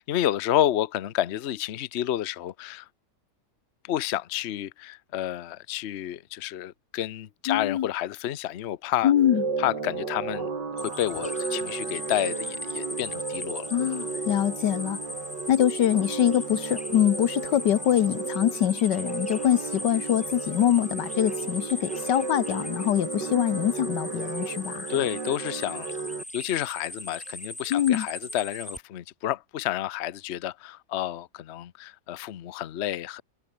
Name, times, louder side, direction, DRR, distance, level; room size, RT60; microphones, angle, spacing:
voice 1, 0.0-2.9 3.8-9.1 9.6-10.5 10.8-13.7 24.9-25.9 26.3-33.2, left 12 dB, 50° left, 0.8 m, -30 dB
voice 2, 7.5-7.9 9.0-9.4 13.7-15.0 15.5-24.9 27.7-28.1, left 11 dB, 85° left, 1.6 m, -24 dB
sound 1, 9.1-26.2, right 4 dB, 85° right, 3.6 m, -34 dB
sound 2, 10.8-28.8, left 1 dB, 5° left, 1.4 m, -38 dB
omnidirectional pair, 1.8 m